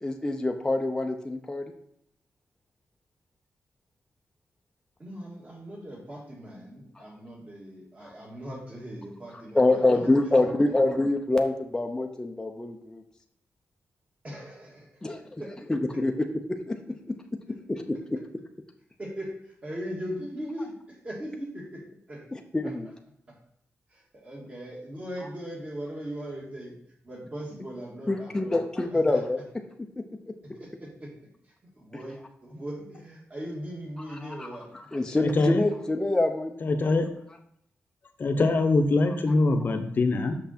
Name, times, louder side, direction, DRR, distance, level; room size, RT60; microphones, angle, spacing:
voice 1, 0.0-1.7 7.0-7.1 8.0-8.1 9.5-13.0 15.0-15.4 15.7-16.1 16.5-16.8 17.1-17.2 17.7-18.0 22.5-22.9 28.1-29.4 34.1-34.5 34.7-36.6, left 2 dB, 10° left, 3 dB, 0.6 m, -26 dB
voice 2, 5.0-10.3 10.6-11.0 14.2-15.0 15.4-15.5 15.9-16.0 19.0-22.2 23.9-26.7 27.0-28.6 28.9-29.2 30.5-31.1 31.8-34.7, equal, 30° right, -2 dB, 2.0 m, -39 dB
voice 3, 35.2-35.6 36.6-37.1 38.2-40.4, left 3 dB, 40° left, 5 dB, 0.8 m, -23 dB
6.2 x 5.9 x 4.2 m, 0.72 s
wide cardioid pair, 160°, 5 cm